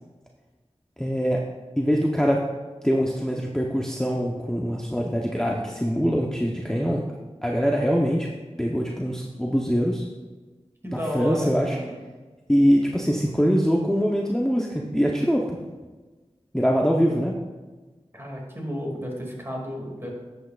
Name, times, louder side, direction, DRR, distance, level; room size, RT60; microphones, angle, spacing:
voice 1, 1.0-1.4 1.8-2.4 2.8-7.0 7.4-8.3 8.6-10.1 11.1-11.8 12.5-15.6 16.5-17.3, equal, 5° left, -2 dB, 0.9 m, -23 dB
voice 2, 10.8-12.0 18.1-20.1, equal, 20° right, -1 dB, 2.4 m, -32 dB
11.5 x 8.1 x 2.4 m, 1.3 s
wide cardioid pair, 45°, 11 cm